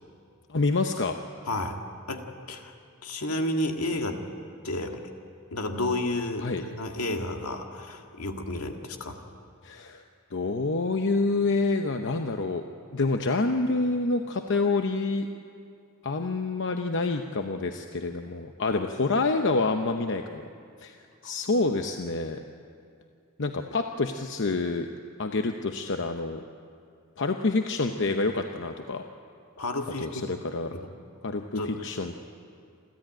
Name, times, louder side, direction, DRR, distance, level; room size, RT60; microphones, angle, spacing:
voice 1, 0.5-1.2 6.4-6.6 9.6-10.0 10.3-12.6 12.9-15.3 16.0-20.5 20.8-21.0 21.2-22.4 23.4-24.9 25.2-26.4 27.2-29.0 30.0-30.7 31.2-32.2, left 3 dB, 55° left, 5 dB, 0.8 m, -27 dB
voice 2, 1.5-1.8 2.1-2.7 3.0-4.2 4.6-5.0 5.5-9.2 21.2-21.3 29.6-30.2 30.7-30.9 31.6-31.9, left 1 dB, 80° left, 4 dB, 1.9 m, -31 dB
28.5 x 13.5 x 9.0 m, 2.4 s
head